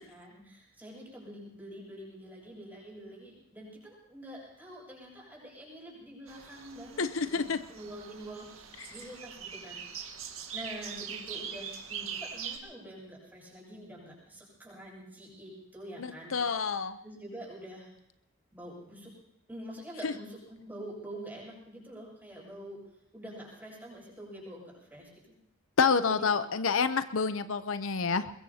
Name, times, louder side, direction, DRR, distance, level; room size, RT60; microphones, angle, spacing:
voice 1, 0.0-7.4 7.7-10.1 10.5-16.5 17.0-17.9 18.5-19.1 19.5-22.8 23.1-25.1 26.1-26.2, right 1 dB, 10° right, -4 dB, 7.0 m, -46 dB
sound 1, 6.3-12.6, right 7 dB, 85° right, 1.8 m, -42 dB
voice 2, 7.0-7.6 8.8-9.0 16.0-17.0 20.0-20.1 25.8-28.3, left 5 dB, 80° left, 11 dB, 0.7 m, -28 dB
22.5 x 21.5 x 2.8 m, 0.81 s
head